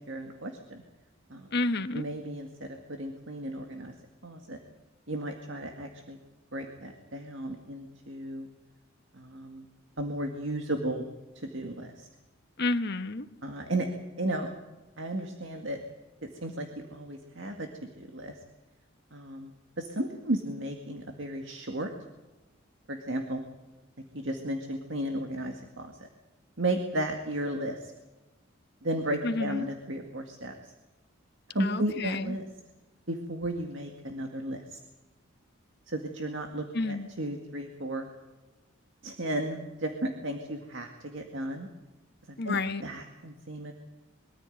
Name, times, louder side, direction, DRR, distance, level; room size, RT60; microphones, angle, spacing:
voice 1, 0.1-0.8 1.3-1.5 1.9-3.9 4.2-4.6 5.1-6.2 6.5-8.5 9.1-9.7 10.0-11.1 11.4-12.1 13.4-13.9 14.2-14.5 15.0-15.8 16.2-17.7 18.0-18.4 19.1-19.5 19.8-21.9 22.9-23.4 24.1-26.0 26.6-27.9 28.8-30.7 31.5-32.4 33.1-34.8 35.9-38.1 39.0-41.7 42.3-43.7, right 1 dB, 65° right, 4 dB, 2.0 m, -34 dB
voice 2, 1.5-2.0 12.6-13.3 29.2-29.7 31.6-32.4 36.7-37.1 42.4-42.8, left 2 dB, 55° left, 9 dB, 1.2 m, -30 dB
23.0 x 14.0 x 9.2 m, 1.1 s
head